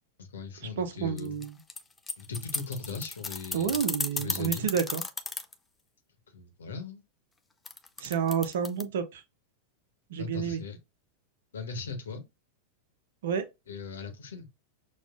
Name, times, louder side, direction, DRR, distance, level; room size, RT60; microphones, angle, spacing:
voice 1, 0.2-1.4 2.2-3.8 4.2-4.7 6.3-7.0 10.2-10.8 11.5-12.2 13.7-14.5, left 5 dB, 65° left, 1.0 m, -39 dB
voice 2, 0.8-1.6 3.5-5.0 8.0-9.2 10.1-10.6 13.2-13.4, right 7 dB, 60° right, 0.7 m, -30 dB
sound 1, 1.2-5.5 7.6-8.8, left 4 dB, 15° left, 0.4 m, -34 dB
6.0 x 2.4 x 2.5 m
figure-of-eight pair, 90°, 0 cm